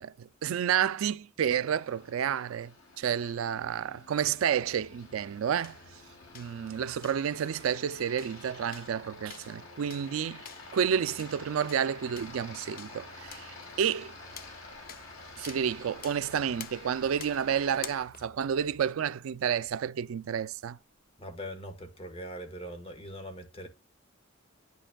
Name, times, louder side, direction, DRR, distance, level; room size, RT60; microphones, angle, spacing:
voice 1, 0.0-5.8 6.3-10.4 10.7-14.1 15.4-20.8, right 8 dB, 85° right, 0.4 m, -30 dB
Aircraft, 1.7-18.0, left 2 dB, 80° left, 4.9 m, -49 dB
sound 1, 4.1-18.9, left 7 dB, 45° left, 0.7 m, -51 dB
voice 2, 21.2-23.7, equal, 30° left, 1.4 m, -41 dB
11.5 x 5.2 x 2.3 m
head